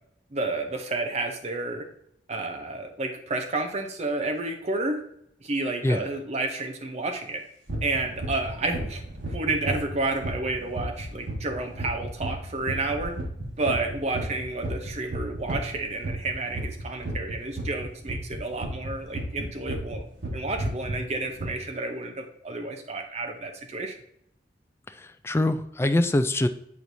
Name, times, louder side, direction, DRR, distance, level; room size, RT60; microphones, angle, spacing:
voice 1, 0.3-1.8 2.3-5.0 5.4-7.4 7.8-13.1 13.6-20.0 20.3-23.9, right 2 dB, 40° right, 4 dB, 0.7 m, -30 dB
sound 1, 7.7-20.0 20.2-21.0 21.4-21.5, right 2 dB, 85° right, 1.8 m, -33 dB
voice 2, 24.9-26.5, left 1 dB, 15° left, 10 dB, 0.3 m, -24 dB
8.3 x 4.5 x 2.6 m, 0.72 s
head